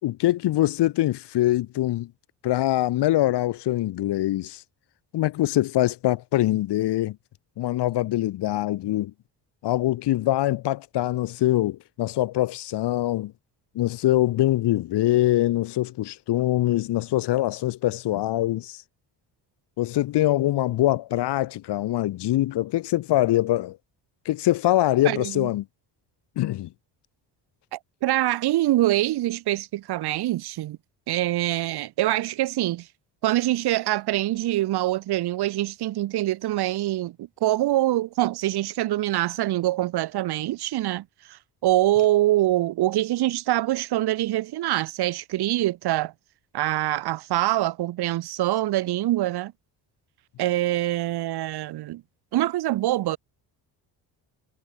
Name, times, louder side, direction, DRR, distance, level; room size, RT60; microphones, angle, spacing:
voice 1, 0.0-2.1 2.4-4.6 5.1-7.2 7.6-9.1 9.6-13.3 13.7-18.8 19.8-23.8 24.3-25.6 26.4-26.7, left 15 dB, 65° left, 0.9 m, -23 dB
voice 2, 25.0-25.5 27.7-30.8 31.1-32.9 33.2-46.1 46.5-49.5 50.4-52.0 52.3-53.2, right 15 dB, 60° right, 0.8 m, -24 dB
cardioid pair, 85°, 43 cm